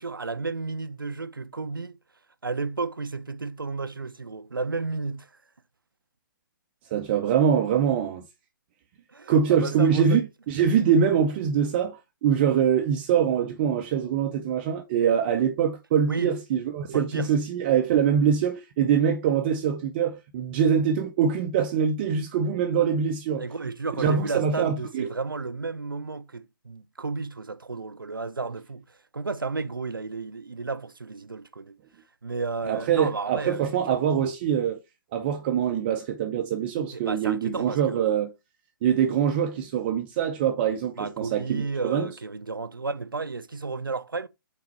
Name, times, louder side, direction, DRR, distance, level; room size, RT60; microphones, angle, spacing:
voice 1, 0.0-2.0 2.4-5.3 9.1-10.2 16.0-16.4 16.9-17.3 23.4-31.8 32.2-34.0 36.9-38.0 41.0-44.3, right 4 dB, 80° right, 0.6 m, -32 dB
voice 2, 6.9-8.2 9.3-23.5 24.0-25.1 32.7-34.8 35.1-38.3 38.8-42.1, right 8 dB, 30° right, 0.6 m, -24 dB
5.8 x 4.2 x 4.4 m
figure-of-eight pair, 130°, 11 cm